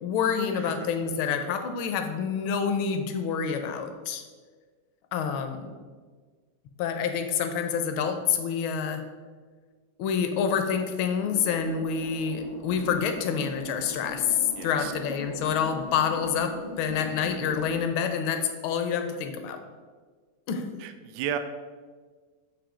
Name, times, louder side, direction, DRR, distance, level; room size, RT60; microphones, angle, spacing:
voice 1, 0.0-4.2 5.1-5.7 6.8-9.0 10.0-19.6 20.5-20.7, left 7 dB, 80° left, 7 dB, 1.4 m, -27 dB
sound 1, 11.2-17.8, left 1 dB, 40° right, 0.6 m, -41 dB
voice 2, 14.6-14.9 20.8-21.4, right 9 dB, 75° right, 8 dB, 0.9 m, -33 dB
7.2 x 3.0 x 4.9 m, 1.5 s
omnidirectional pair, 2.2 m